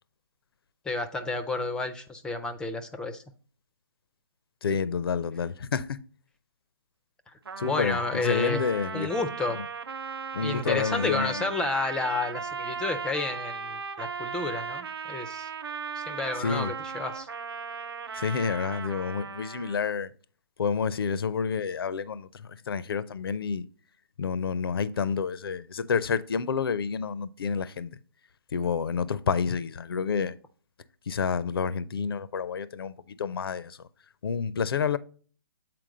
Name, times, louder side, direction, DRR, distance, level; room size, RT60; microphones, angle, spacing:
voice 1, 0.9-3.2 7.3-7.4 7.6-8.6 8.9-9.6 10.4-15.5 15.9-17.3, left 3 dB, 5° left, 0.4 m, -31 dB
voice 2, 4.6-6.0 7.6-9.3 9.5-9.6 10.3-11.5 16.4-16.7 18.1-20.1 20.6-23.7 24.2-28.0 28.5-30.4 31.1-33.8 34.2-35.0, left 6 dB, 75° left, 0.5 m, -29 dB
Trumpet, 7.5-19.9, right 6 dB, 80° right, 0.7 m, -37 dB
7.7 x 4.5 x 3.7 m
hypercardioid pair, 145°, 12 cm